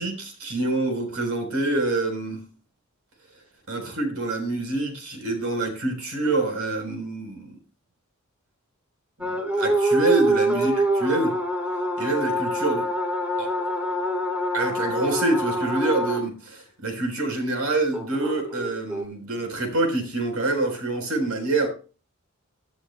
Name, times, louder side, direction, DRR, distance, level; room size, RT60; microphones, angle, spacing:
voice 1, 0.0-2.4 3.7-7.5 9.2-11.4 12.0-12.9 13.4-13.5 14.5-21.7, right 2 dB, 80° right, 4.1 m, -26 dB
sound 1, 9.2-16.2 17.9-19.0, right 1 dB, 5° right, 2.3 m, -25 dB
18.0 x 11.5 x 2.2 m
head